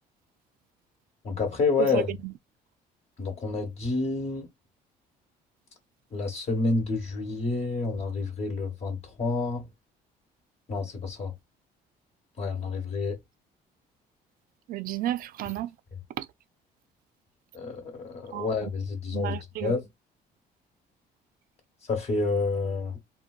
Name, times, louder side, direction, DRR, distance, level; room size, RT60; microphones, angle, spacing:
voice 1, 1.2-2.1 3.2-4.5 6.1-9.6 10.7-11.3 12.4-13.2 17.5-19.9 21.9-23.0, left 3 dB, 40° left, 1.0 m, -29 dB
voice 2, 1.8-2.3 14.7-15.7 16.2-16.3 18.3-18.7 19.1-19.7, right 13 dB, 60° right, 0.4 m, -32 dB
3.8 x 2.2 x 2.3 m
cardioid pair, 110°, 17 cm